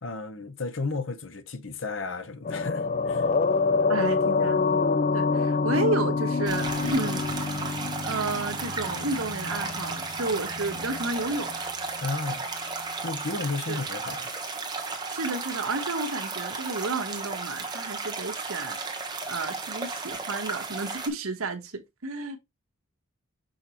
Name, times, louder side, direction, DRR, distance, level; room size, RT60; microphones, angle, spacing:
voice 1, 0.0-3.3 12.0-12.5 13.0-14.3, left 3 dB, 60° left, 0.9 m, -33 dB
sound 1, 2.4-11.1 11.3-11.5, left 4 dB, 35° left, 0.4 m, -27 dB
voice 2, 3.9-7.3 8.0-11.6 13.7-13.8 15.1-18.8 19.3-22.4, right 3 dB, 80° right, 1.2 m, -31 dB
sound 2, 6.5-21.1, right 4 dB, 20° right, 1.1 m, -34 dB
6.3 x 5.1 x 3.0 m
head